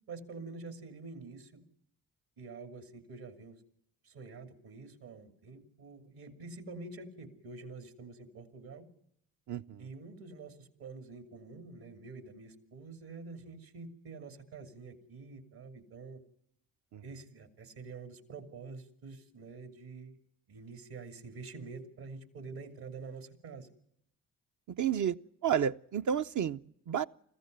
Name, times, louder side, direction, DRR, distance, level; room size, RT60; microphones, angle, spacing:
voice 1, 0.1-1.6 2.4-3.6 4.0-8.9 9.8-16.2 17.0-20.2 20.5-23.7, right 4 dB, 70° right, 2.9 m, -47 dB
voice 2, 9.5-9.9 16.9-17.0 24.8-25.2 25.4-27.0, right 8 dB, 50° right, 0.7 m, -31 dB
21.5 x 15.0 x 9.4 m
hypercardioid pair, 45°, 38 cm